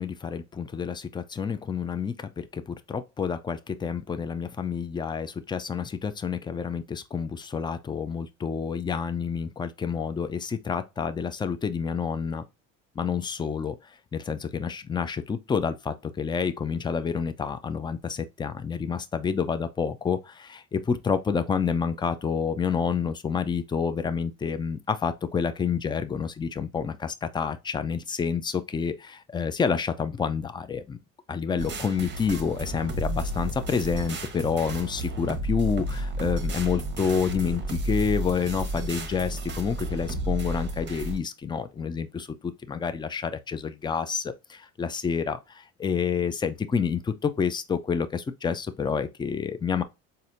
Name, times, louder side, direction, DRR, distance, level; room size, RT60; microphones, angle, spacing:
voice 1, 0.0-12.4 13.0-13.7 14.1-31.0 31.3-49.8, left 6 dB, 15° left, 0.4 m, -29 dB
sound 1, 31.6-41.2, right 1 dB, 30° right, 1.0 m, -32 dB
4.1 x 2.6 x 2.5 m
supercardioid pair, 85°, 36 cm